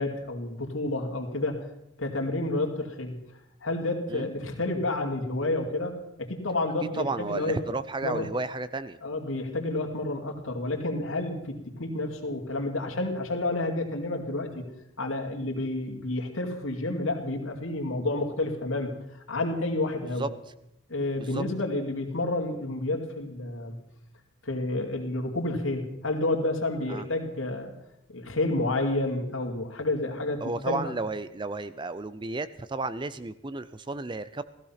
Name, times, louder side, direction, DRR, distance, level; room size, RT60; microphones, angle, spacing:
voice 1, 0.0-1.6 2.0-3.2 3.6-7.6 8.0-8.3 9.0-14.6 15.0-18.9 19.3-20.3 20.9-23.7 24.4-27.7 28.1-30.8, left 2 dB, 75° left, 3 dB, 2.5 m, -30 dB
voice 2, 7.0-9.0 20.2-20.3 21.2-21.4 26.9-27.1 30.4-34.4, right 3 dB, 25° right, 14 dB, 0.5 m, -32 dB
15.5 x 15.5 x 5.8 m, 0.84 s
head